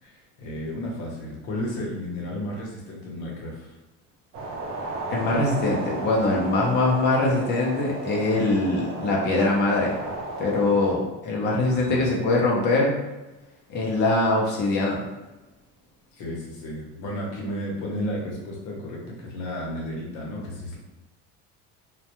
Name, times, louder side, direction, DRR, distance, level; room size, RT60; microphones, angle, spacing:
voice 1, 0.0-3.7 11.7-12.1 16.1-20.8, left 1 dB, 65° left, -2 dB, 0.9 m, -33 dB
sound 1, 4.3-10.9, right 2 dB, 45° right, 0.6 m, -34 dB
voice 2, 5.1-9.9 10.4-13.0 13.7-15.0, left 2 dB, 35° left, -3 dB, 0.6 m, -22 dB
2.2 x 2.1 x 2.9 m, 1.1 s
cardioid pair, 160°, 31 cm